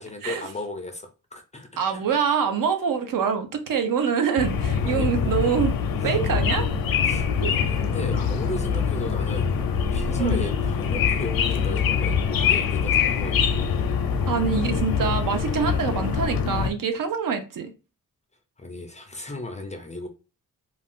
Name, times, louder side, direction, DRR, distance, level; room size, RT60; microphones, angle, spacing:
voice 1, 0.0-2.0 4.8-5.1 6.0-6.2 7.0-9.5 9.9-13.5 18.6-20.1, left 2 dB, 20° left, 0.3 m, -36 dB
voice 2, 1.8-5.7 6.0-6.7 7.4-7.5 10.2-10.4 14.3-17.7, right 6 dB, 70° right, 0.6 m, -25 dB
sound 1, 4.4-16.7, left 6 dB, 90° left, 0.5 m, -24 dB
2.5 x 2.3 x 3.5 m
wide cardioid pair, 160°, 34 cm